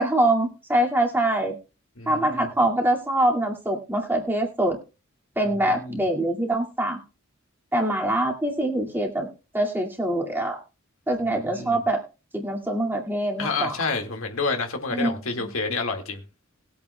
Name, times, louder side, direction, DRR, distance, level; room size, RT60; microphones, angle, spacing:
voice 1, 0.0-1.5 2.1-4.8 5.4-7.0 7.7-9.3 9.5-10.6 11.1-12.0 12.3-13.8 14.9-15.2, right 1 dB, 10° right, 2.3 m, -24 dB
voice 2, 2.0-2.5 5.7-6.0 11.2-11.8 13.4-16.2, left 4 dB, 75° left, 2.0 m, -29 dB
20.0 x 8.6 x 2.3 m
head